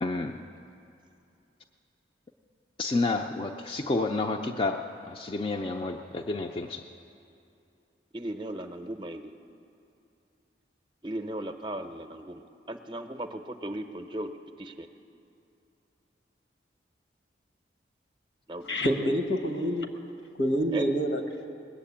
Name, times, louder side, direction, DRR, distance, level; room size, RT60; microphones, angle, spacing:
voice 1, 0.0-0.4 2.8-6.8, left 3 dB, 30° left, 3 dB, 0.4 m, -30 dB
voice 2, 8.1-9.3 11.0-12.4 12.7-14.3 14.6-14.9 18.5-18.9 20.7-20.8, right 1 dB, 25° right, 7 dB, 0.6 m, -36 dB
voice 3, 18.6-19.9 20.4-21.2, equal, 80° left, 6 dB, 1.3 m, -27 dB
20.0 x 7.5 x 8.5 m, 2.7 s
head